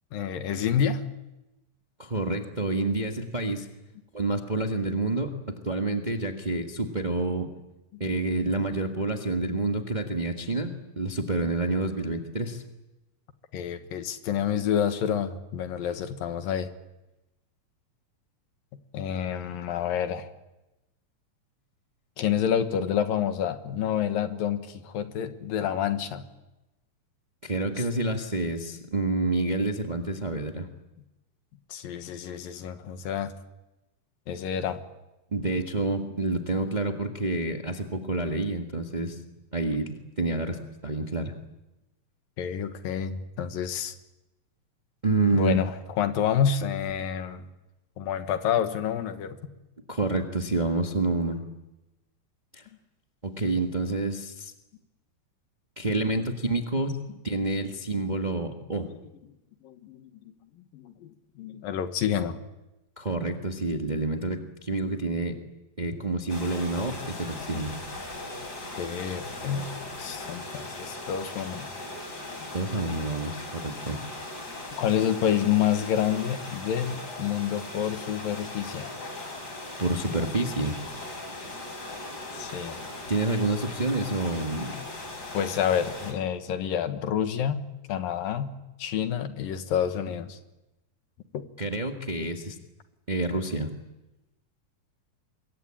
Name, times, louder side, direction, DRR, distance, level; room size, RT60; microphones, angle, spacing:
voice 1, 0.1-1.0 7.9-8.0 13.5-16.7 18.9-20.3 22.2-26.3 27.7-27.8 31.7-33.3 34.3-34.8 42.4-43.9 45.3-47.5 48.0-49.4 58.8-58.9 59.6-60.3 60.7-62.4 67.5-67.6 68.8-69.7 70.0-71.7 74.8-78.9 82.3-82.9 85.3-90.4 91.3-91.5, left 8 dB, 80° left, 9 dB, 3.1 m, -28 dB
voice 2, 2.0-3.7 4.1-7.5 8.0-12.6 27.4-30.7 35.3-39.2 39.5-41.3 45.0-45.6 49.9-51.4 52.5-52.6 53.2-54.5 55.8-57.0 57.2-58.9 63.0-65.4 65.8-67.7 72.5-74.0 79.8-80.8 83.1-84.7 91.6-92.6 93.1-93.7, right 2 dB, 40° right, 3 dB, 0.6 m, -28 dB
sound 1, 66.3-86.1, left 2 dB, 25° left, 4.8 m, -39 dB
26.0 x 22.5 x 8.9 m, 1.0 s
omnidirectional pair, 4.1 m